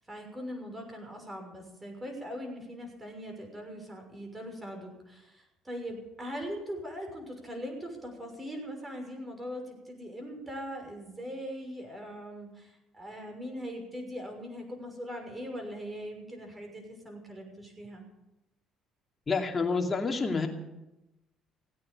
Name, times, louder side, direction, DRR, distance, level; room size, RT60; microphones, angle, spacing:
voice 1, 0.0-18.0, equal, 20° right, 3 dB, 6.2 m, -41 dB
voice 2, 19.3-20.5, left 4 dB, 30° left, 2 dB, 2.7 m, -28 dB
17.0 x 9.6 x 8.6 m, 0.96 s
supercardioid pair, 80°, 0 cm